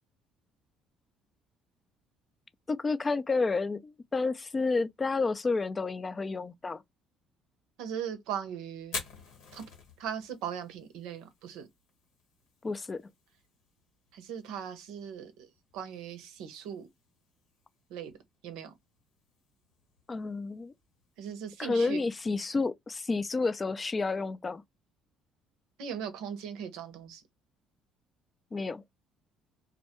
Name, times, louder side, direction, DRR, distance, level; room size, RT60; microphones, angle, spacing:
voice 1, 2.7-6.8 12.6-13.0 20.1-20.7 21.6-24.6 28.5-28.8, left 3 dB, 30° left, 0.3 m, -30 dB
voice 2, 7.8-9.0 9.5-9.6 10.0-11.7 14.1-15.5 15.7-16.9 17.9-18.1 18.4-18.7 21.2-22.0 25.8-27.2, right 8 dB, 80° right, 0.6 m, -39 dB
Fire, 8.8-22.7, left 4 dB, 80° left, 1.1 m, -50 dB
2.2 x 2.1 x 2.9 m
supercardioid pair, 70°, 0 cm